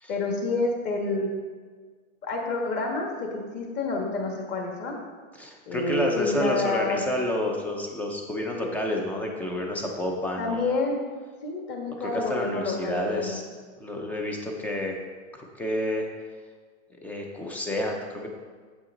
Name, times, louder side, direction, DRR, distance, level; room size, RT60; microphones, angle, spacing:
voice 1, 0.1-1.3 2.2-5.0 5.7-7.0 10.4-11.0 11.4-13.4, left 3 dB, 30° left, 1 dB, 1.6 m, -28 dB
voice 2, 5.4-10.8 12.0-13.4 13.8-14.9 15.3-16.1 17.0-18.3, left 1 dB, 5° left, 1 dB, 0.5 m, -29 dB
8.8 x 8.1 x 3.8 m, 1.5 s
supercardioid pair, 160°, 38 cm